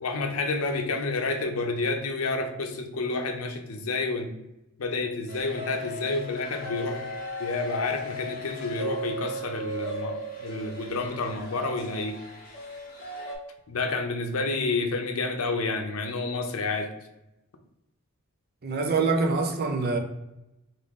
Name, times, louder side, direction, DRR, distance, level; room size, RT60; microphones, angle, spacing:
voice 1, 0.0-4.3 4.8-12.2 13.7-16.9, left 3 dB, 80° left, 4 dB, 0.6 m, -29 dB
sound 1, 5.3-13.4, equal, 40° left, 0.9 m, -37 dB
voice 2, 18.6-20.0, right 4 dB, 45° right, 5 dB, 0.5 m, -25 dB
3.6 x 2.6 x 3.5 m, 0.91 s
head